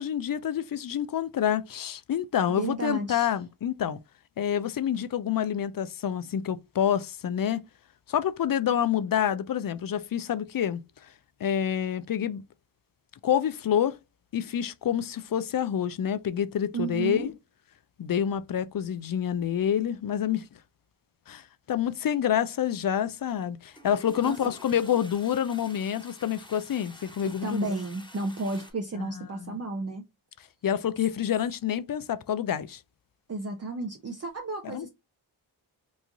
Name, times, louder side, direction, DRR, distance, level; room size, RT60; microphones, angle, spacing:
voice 1, 0.0-4.0 4.4-7.6 8.1-10.8 11.4-12.4 13.2-14.0 14.3-17.3 18.0-20.5 21.3-27.7 29.0-29.6 30.6-32.8 34.6-34.9, left 9 dB, 45° left, 0.4 m, -28 dB
voice 2, 2.5-3.3 16.7-17.3 24.2-24.4 27.4-30.0 33.3-34.9, right 3 dB, 30° right, 0.6 m, -32 dB
Toilet flush, 23.3-23.4 23.7-28.7, left 1 dB, 10° left, 1.1 m, -49 dB
3.1 x 2.4 x 3.5 m
cardioid pair, 45°, 48 cm